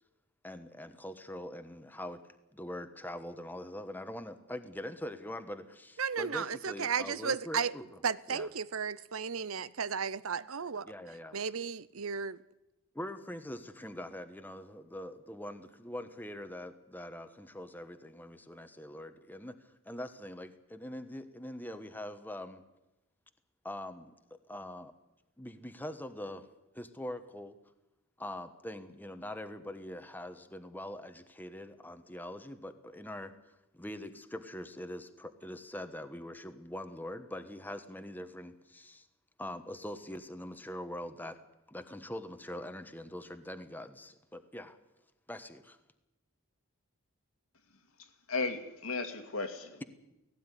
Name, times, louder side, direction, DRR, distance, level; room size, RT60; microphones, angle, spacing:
voice 1, 0.4-2.2 2.5-7.9 8.3-8.5 10.9-11.4 12.9-19.6 19.8-22.6 23.6-24.9 25.4-26.5 26.7-27.6 28.2-33.3 33.7-39.1 39.4-41.4 41.7-44.8 45.3-45.8, left 1 dB, 10° left, 1.3 m, -43 dB
voice 2, 6.0-7.7 8.0-10.9 11.3-12.4, right 6 dB, 75° right, 0.8 m, -34 dB
voice 3, 48.0-49.8, left 3 dB, 80° left, 2.5 m, -36 dB
17.5 x 17.0 x 10.0 m
head